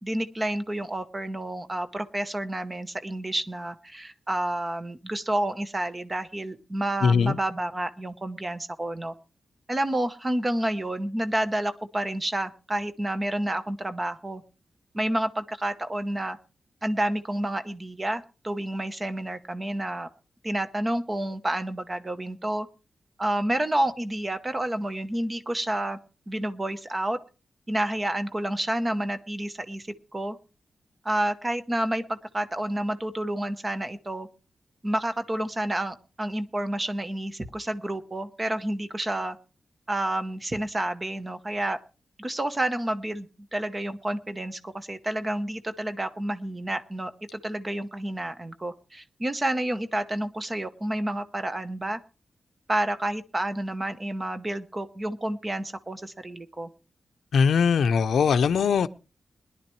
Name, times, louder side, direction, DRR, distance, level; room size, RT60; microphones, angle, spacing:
voice 1, 0.0-9.1 9.7-14.4 14.9-16.4 16.8-20.1 20.4-22.7 23.2-26.0 26.3-27.2 27.7-29.9 30.1-30.4 31.0-34.3 34.8-39.4 39.9-41.8 42.2-43.3 43.5-52.0 52.7-56.7, right 1 dB, 15° right, 0.8 m, -29 dB
voice 2, 7.0-7.4 57.3-58.9, left 6 dB, 85° left, 0.6 m, -21 dB
21.0 x 11.0 x 3.1 m
wide cardioid pair, 180°, 0 cm